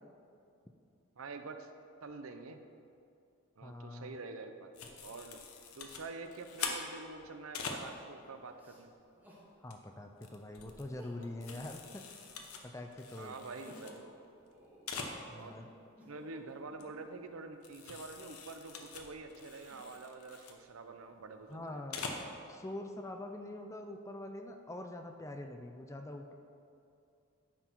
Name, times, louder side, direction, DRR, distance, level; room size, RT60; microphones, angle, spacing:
voice 1, 1.2-1.7 2.0-2.6 3.6-4.7 5.0-5.4 5.8-8.9 13.2-14.0 15.3-15.5 16.1-22.3, right 3 dB, 70° right, 7 dB, 0.6 m, -47 dB
voice 2, 3.6-4.2 9.6-12.0 12.6-13.3 15.3-15.7 21.5-22.0 22.5-26.3, left 1 dB, 15° left, 4 dB, 0.4 m, -44 dB
sound 1, 4.7-7.8 9.5-9.7 10.2-14.0 14.2-14.3 14.5-14.6 14.9-15.2 16.8-16.9 17.6-20.5 21.7-22.3, left 5 dB, 80° left, 1.0 m, -44 dB
Crying sobbing, 7.8-9.5 10.0-10.1 10.8-11.5 11.9-12.9 13.4-17.4 18.1-20.2 20.7-21.5, equal, 10° right, 1.3 m, -59 dB
10.0 x 5.9 x 4.5 m, 2.6 s
head